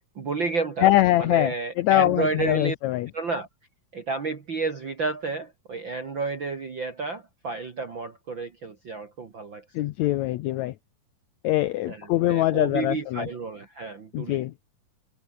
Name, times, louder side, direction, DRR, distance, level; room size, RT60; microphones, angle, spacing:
voice 1, 0.2-0.9 1.2-2.8 3.1-3.5 3.9-9.6 11.9-14.4, right 4 dB, 40° right, 2.4 m, -31 dB
voice 2, 0.8-3.1 9.7-10.7 11.4-13.3 14.1-14.5, left 15 dB, 75° left, 1.7 m, -23 dB
omnidirectional pair, 4.0 m